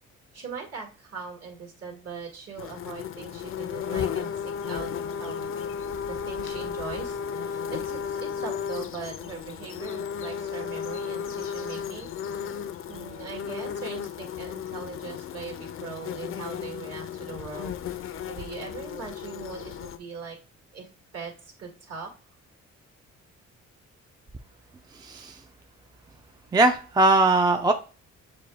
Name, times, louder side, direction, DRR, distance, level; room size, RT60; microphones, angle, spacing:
voice 1, 0.3-4.9 5.2-5.5 6.1-12.1 12.9-20.4 20.7-20.9 21.1-22.1, right 5 dB, 55° right, 0 dB, 1.9 m, -40 dB
sound 1, 2.6-20.0, left 7 dB, 45° left, 0.5 m, -34 dB
voice 2, 25.0-25.4 26.5-27.7, right 2 dB, 15° right, 6 dB, 0.4 m, -20 dB
6.8 x 2.3 x 3.4 m, 0.35 s
cardioid pair, 90°, 30 cm